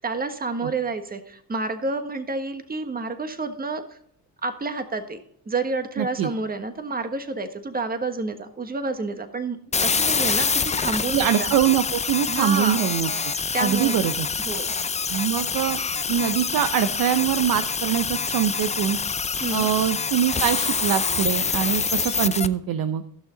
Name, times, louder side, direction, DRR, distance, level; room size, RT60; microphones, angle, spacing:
voice 1, 0.0-3.8 4.4-5.2 5.5-11.6 12.3-12.8 13.5-14.0 14.4-14.7 19.4-19.7, right 3 dB, 25° right, 8 dB, 1.4 m, -29 dB
voice 2, 6.0-6.3 11.1-13.1 13.6-14.3 15.1-15.8 16.1-19.0 19.5-23.0, right 10 dB, 60° right, 10 dB, 0.7 m, -23 dB
sound 1, 9.7-22.5, left 5 dB, 20° left, 0.5 m, -26 dB
15.0 x 6.4 x 3.9 m, 0.67 s
supercardioid pair, 75°, 38 cm